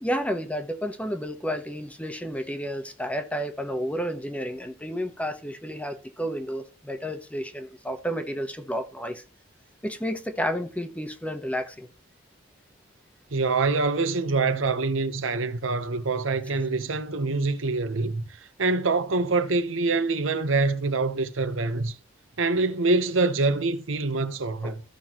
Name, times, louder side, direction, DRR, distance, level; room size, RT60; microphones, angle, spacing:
voice 1, 0.0-9.2 9.8-11.9 24.6-24.7, equal, 5° left, 1.1 m, -31 dB
voice 2, 13.3-22.0 22.4-24.8, right 3 dB, 70° right, 0.9 m, -25 dB
14.0 x 6.0 x 3.0 m
head